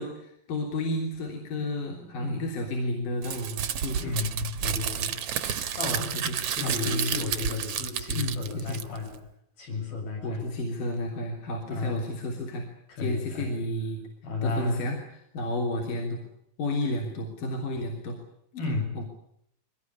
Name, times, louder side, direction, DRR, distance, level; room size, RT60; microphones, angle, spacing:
voice 1, 0.0-4.1 6.0-7.2 8.1-8.8 10.2-12.7 13.0-14.0 14.4-15.0 15.3-16.2 16.6-18.2 18.7-19.0, left 1 dB, 65° left, 0 dB, 4.9 m, -32 dB
voice 2, 2.2-2.5 4.0-5.2 5.8-6.1 6.4-9.2 9.6-10.6 11.7-12.0 12.9-13.6 14.2-14.8 18.5-19.1, left 3 dB, 85° left, 1 dB, 9.2 m, -33 dB
Crumpling crinkling, 3.2-9.2, right 8 dB, 60° right, 1.8 m, -31 dB
23.0 x 19.5 x 9.8 m, 0.73 s
omnidirectional pair, 4.1 m